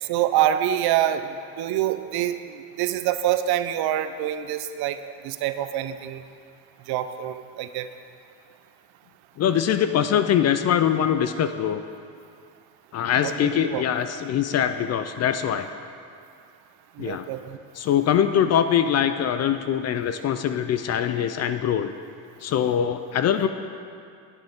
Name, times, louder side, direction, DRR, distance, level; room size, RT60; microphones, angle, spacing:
voice 1, 0.0-5.0 5.2-6.2 6.9-7.9 13.2-13.3 13.7-13.8 17.0-17.6, right 11 dB, 55° right, 10 dB, 0.6 m, -26 dB
voice 2, 9.4-11.8 12.9-15.7 17.0-17.3 17.8-21.9 22.4-23.5, left 9 dB, 35° left, 10 dB, 0.4 m, -23 dB
10.5 x 9.2 x 3.6 m, 2.4 s
supercardioid pair, 95°, 46 cm